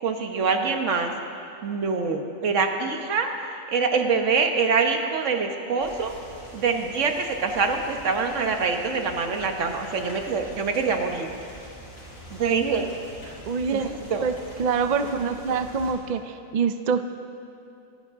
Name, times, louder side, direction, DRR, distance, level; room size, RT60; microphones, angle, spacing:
voice 1, 0.0-1.1 1.6-6.1 6.5-11.3 12.3-12.9 13.7-14.2, right 5 dB, 60° right, 5 dB, 1.4 m, -25 dB
sound 1, 5.8-15.9, right 1 dB, 75° left, 4.4 m, -44 dB
voice 2, 13.3-13.9 14.2-14.3 14.6-17.0, right 5 dB, 80° right, 8 dB, 0.3 m, -25 dB
26.0 x 9.8 x 3.6 m, 2.6 s
omnidirectional pair, 1.5 m